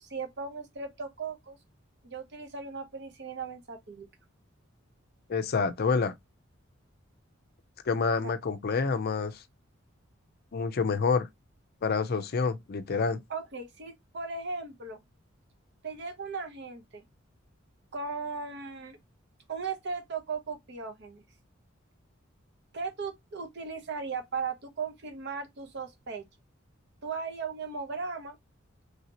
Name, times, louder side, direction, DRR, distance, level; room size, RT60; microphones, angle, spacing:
voice 1, 0.0-1.6 2.0-4.1 8.2-8.3 13.3-15.0 15.8-17.0 17.9-19.0 19.5-21.2 22.7-26.2 27.0-28.4, right 5 dB, 55° right, 0.8 m, -37 dB
voice 2, 5.3-6.1 7.9-9.4 10.5-11.3 11.8-13.2, left 5 dB, 50° left, 0.4 m, -27 dB
3.2 x 2.8 x 2.7 m
head